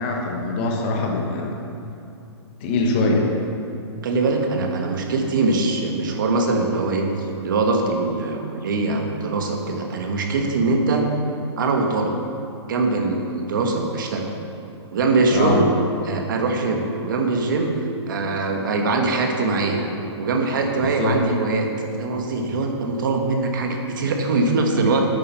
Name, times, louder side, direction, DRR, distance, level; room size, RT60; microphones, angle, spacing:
voice 1, 0.0-1.6 2.6-3.3 15.3-15.6 20.8-21.2, left 2 dB, 20° left, 1 dB, 1.0 m, -23 dB
voice 2, 4.0-7.1 7.4-11.1 11.6-12.1 12.7-14.3 14.9-15.7 16.0-19.8 20.2-21.7 22.0-25.1, right 3 dB, 45° right, 3 dB, 1.3 m, -22 dB
9.0 x 8.3 x 5.6 m, 2.7 s
hypercardioid pair, 180°, 15 cm